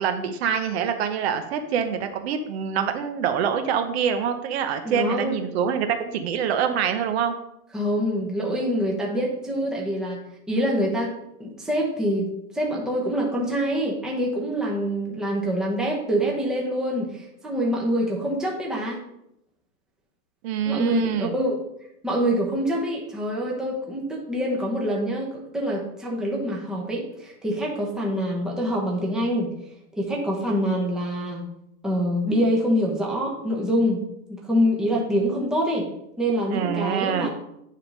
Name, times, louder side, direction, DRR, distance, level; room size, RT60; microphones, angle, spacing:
voice 1, 0.0-7.3 20.4-21.3 36.5-37.3, right 7 dB, 45° right, 7 dB, 0.8 m, -25 dB
voice 2, 4.8-5.4 7.7-10.2 10.5-11.1 11.4-12.3 12.5-19.0 20.6-21.6 22.0-29.5 30.0-31.4 31.8-34.0 34.3-35.9 36.2-37.3, equal, ahead, -3 dB, 0.9 m, -25 dB
9.8 x 3.6 x 5.4 m, 0.81 s
supercardioid pair, 165°, 44 cm